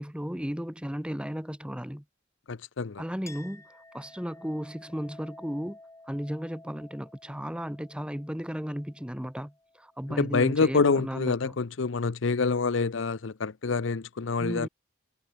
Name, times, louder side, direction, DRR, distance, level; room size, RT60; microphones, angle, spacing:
voice 1, 0.0-2.0 3.0-5.8 6.1-11.6 14.4-14.7, equal, 5° right, 1.5 m, -35 dB
voice 2, 2.5-3.0 10.2-14.7, left 4 dB, 70° left, 0.7 m, -26 dB
Chink clink, 3.3-10.3, left 2 dB, 15° left, 7.5 m, -53 dB
head